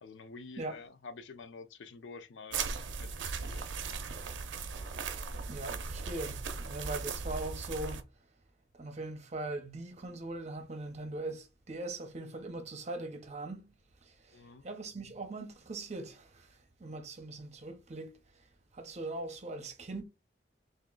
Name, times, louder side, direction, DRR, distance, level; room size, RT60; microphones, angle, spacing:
voice 1, 0.0-2.6 3.0-3.7 14.3-14.7, left 4 dB, 80° left, 0.5 m, -48 dB
sound 1, 2.5-8.0, right 5 dB, 85° right, 0.5 m, -38 dB
voice 2, 5.5-8.0 8.7-18.2 18.7-20.0, right 2 dB, 40° right, 0.8 m, -41 dB
2.9 x 2.6 x 3.8 m
head